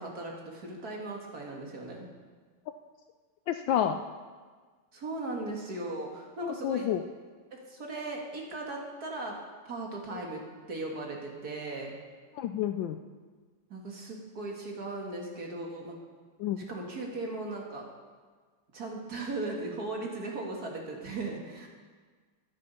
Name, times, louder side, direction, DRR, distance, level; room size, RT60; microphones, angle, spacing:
voice 1, 0.0-2.1 4.9-6.9 7.5-9.4 9.7-10.4 10.7-11.9 13.7-16.0 16.7-17.8 18.7-21.7, right 2 dB, 45° right, 0 dB, 2.2 m, -37 dB
voice 2, 3.5-4.0 6.4-7.0 12.3-13.0 16.4-16.6, left 10 dB, 75° left, 8 dB, 1.1 m, -29 dB
13.0 x 10.5 x 5.5 m, 1.5 s
omnidirectional pair, 2.4 m